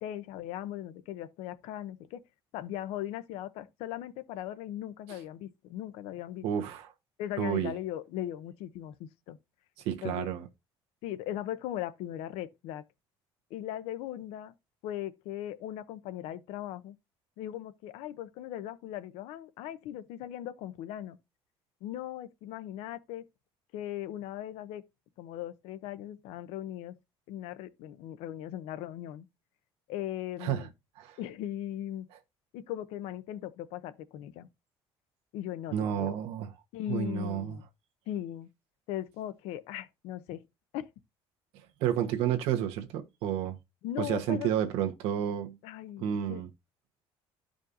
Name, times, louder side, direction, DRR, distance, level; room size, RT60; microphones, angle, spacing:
voice 1, 0.0-2.2 2.5-6.4 7.2-9.4 10.0-10.3 11.0-12.8 13.5-14.5 14.8-17.0 17.4-21.2 21.8-23.2 23.7-24.8 25.2-26.9 27.3-29.3 29.9-30.7 31.2-32.1 32.5-34.5 35.3-36.2 36.7-37.7 38.1-38.5 38.9-40.4 40.7-40.9 43.8-44.5 45.6-46.4, left 12 dB, 90° left, 0.7 m, -38 dB
voice 2, 6.4-6.9 7.4-7.7 9.8-10.5 30.4-30.7 31.0-31.2 35.7-36.5 36.9-37.6 41.8-43.6 44.0-45.6 46.0-46.5, right 10 dB, 75° right, 1.2 m, -30 dB
12.5 x 5.1 x 2.6 m
cardioid pair, 180°, 10 cm